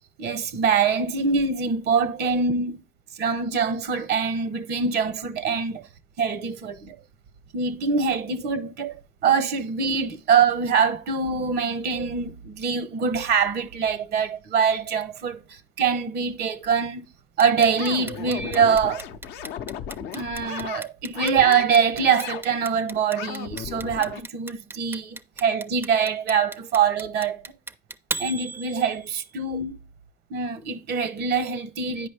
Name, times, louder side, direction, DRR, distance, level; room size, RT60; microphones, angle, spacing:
voice 1, 0.2-2.8 3.1-5.9 6.2-7.0 7.5-17.0 17.4-19.0 20.1-27.4 28.2-29.8 30.3-32.1, right 6 dB, 70° right, 0.8 m, -24 dB
Clock, 17.4-29.4, right 3 dB, 15° right, 0.4 m, -36 dB
sound 1, 17.8-20.8 21.1-21.6 21.9-22.4 22.9-24.2, left 9 dB, 85° left, 0.6 m, -36 dB
9.2 x 5.1 x 3.3 m
cardioid pair, 110°, 17 cm